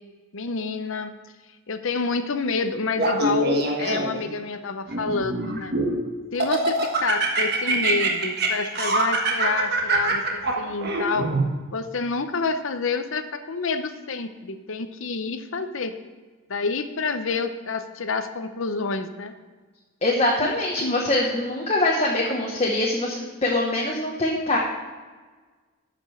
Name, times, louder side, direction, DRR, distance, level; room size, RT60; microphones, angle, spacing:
voice 1, 0.3-1.1 1.7-5.7 6.3-11.3 11.7-15.9 16.5-19.3 20.4-21.1, left 4 dB, 65° left, 9 dB, 0.7 m, -28 dB
Laughter, 3.0-4.3 4.9-6.0 6.4-11.4, right 3 dB, 45° right, 1.4 m, -24 dB
voice 2, 20.0-24.6, left 2 dB, 30° left, -2 dB, 1.0 m, -23 dB
12.5 x 5.3 x 6.3 m, 1.4 s
head